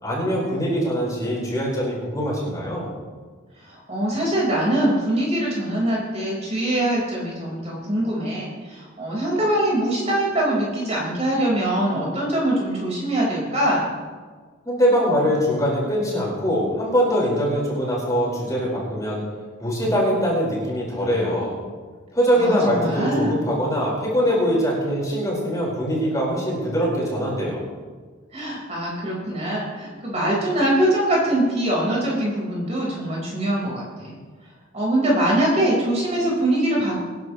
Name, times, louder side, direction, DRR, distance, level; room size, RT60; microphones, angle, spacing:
voice 1, 0.0-2.9 14.6-19.2 19.6-21.6 22.1-27.6, equal, 15° left, -5 dB, 5.1 m, -22 dB
voice 2, 3.6-13.9 22.3-23.5 28.3-34.1 34.7-37.0, right 1 dB, 35° right, -4 dB, 4.9 m, -23 dB
25.5 x 11.0 x 3.2 m, 1.5 s
head